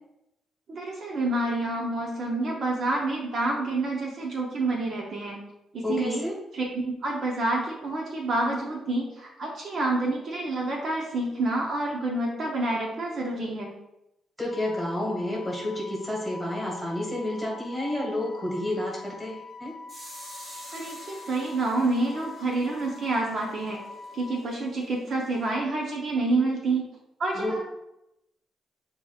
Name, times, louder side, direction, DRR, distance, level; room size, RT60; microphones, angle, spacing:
voice 1, 0.7-5.4 5.7-6.2 6.5-13.7 20.7-23.8 24.1-26.9 27.2-27.6, right 2 dB, 50° right, -1 dB, 0.6 m, -28 dB
voice 2, 5.8-6.3 14.4-19.7 27.3-27.6, left 1 dB, ahead, -4 dB, 1.5 m, -30 dB
Wind instrument woodwind instrument, 14.5-24.4, left 4 dB, 40° left, 0.3 m, -44 dB
sound 1, 19.9-25.5, equal, 15° right, 1.2 m, -48 dB
7.0 x 2.7 x 2.4 m, 0.88 s
cardioid pair, 135°, 0 cm